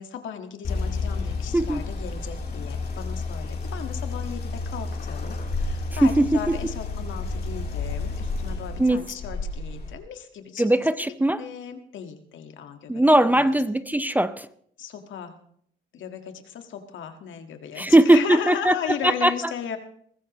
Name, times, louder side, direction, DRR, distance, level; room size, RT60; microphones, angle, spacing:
voice 1, 0.0-10.7 11.4-13.5 14.8-15.4 15.9-19.8, left 8 dB, 75° left, 1.7 m, -36 dB
sound 1, 0.6-9.9, left 3 dB, 50° left, 3.5 m, -31 dB
voice 2, 1.5-1.8 6.0-6.7 8.8-9.0 10.6-11.4 12.9-14.5 17.8-19.3, right 1 dB, 10° right, 0.6 m, -20 dB
22.0 x 14.5 x 3.1 m
cardioid pair, 90°, 20 cm